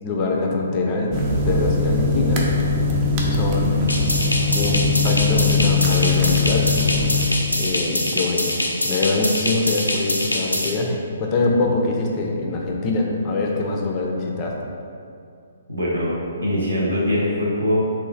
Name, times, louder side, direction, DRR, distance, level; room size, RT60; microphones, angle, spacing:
voice 1, 0.0-2.4 3.3-3.9 4.5-6.7 7.5-8.6 8.8-14.5, left 3 dB, 30° left, -1 dB, 0.4 m, -24 dB
sound 1, 1.1-7.3, left 3 dB, 30° right, 0.5 m, -21 dB
sound 2, 3.9-10.7, left 1 dB, 85° left, 0.5 m, -24 dB
voice 2, 15.7-16.1 16.4-17.8, left 1 dB, 75° right, -5 dB, 1.0 m, -22 dB
3.1 x 2.5 x 3.8 m, 2.4 s
figure-of-eight pair, 130°, 0 cm